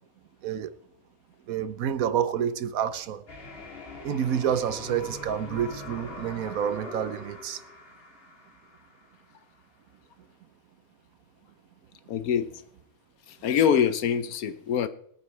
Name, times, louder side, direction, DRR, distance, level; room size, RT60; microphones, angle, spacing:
voice 1, 0.4-0.7 1.5-3.2 4.0-7.6, right 9 dB, 75° right, 1.2 m, -28 dB
sound 1, 3.3-9.2, left 2 dB, 40° left, 2.0 m, -42 dB
voice 2, 12.1-12.5 13.4-14.9, left 8 dB, 85° left, 1.3 m, -24 dB
21.5 x 9.4 x 3.3 m
omnidirectional pair, 1.5 m